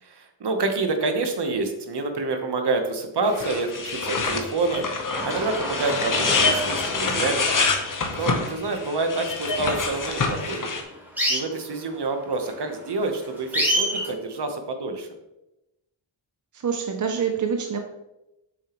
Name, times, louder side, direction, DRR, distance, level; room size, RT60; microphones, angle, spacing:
voice 1, 0.0-7.5 8.1-10.7 11.3-15.1, right 3 dB, 55° right, 6 dB, 1.0 m, -27 dB
sound 1, 3.3-10.8, left 4 dB, 40° left, 0.9 m, -26 dB
sound 2, 5.1-14.1, equal, 5° right, 2.8 m, -30 dB
voice 2, 16.5-17.8, right 6 dB, 40° right, 4 dB, 0.6 m, -26 dB
7.8 x 6.4 x 3.0 m, 0.93 s
wide cardioid pair, 165°, 47 cm